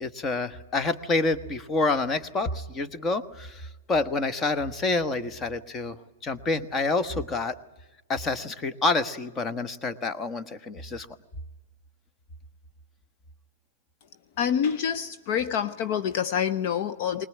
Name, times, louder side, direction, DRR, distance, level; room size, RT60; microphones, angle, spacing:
voice 1, 0.0-5.9 6.2-7.6 8.1-11.1, left 3 dB, 20° left, 1.2 m, -28 dB
voice 2, 14.4-17.3, left 8 dB, 45° left, 0.8 m, -27 dB
21.0 x 20.0 x 9.8 m
hypercardioid pair, 130°, 0 cm